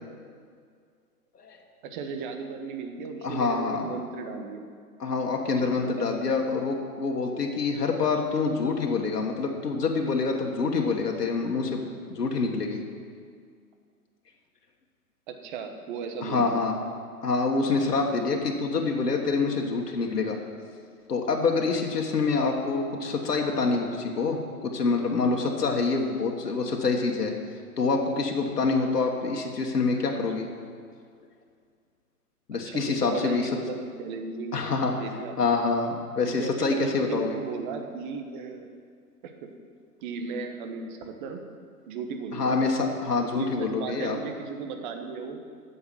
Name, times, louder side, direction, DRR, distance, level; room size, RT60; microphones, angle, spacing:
voice 1, 1.8-4.6 5.8-6.3 8.7-8.8 15.3-16.5 32.6-35.5 36.2-38.7 39.2-39.5 40.0-41.4 41.9-42.6 43.2-45.4, right 5 dB, 30° right, 5 dB, 1.1 m, -36 dB
voice 2, 3.2-3.8 5.0-12.8 16.2-16.7 17.2-20.4 21.1-27.3 27.8-30.5 32.5-33.5 34.5-34.9 35.4-37.4 42.3-44.2, left 4 dB, 85° left, 1 dB, 1.5 m, -26 dB
9.6 x 7.0 x 7.7 m, 2.1 s
hypercardioid pair, 140°, 46 cm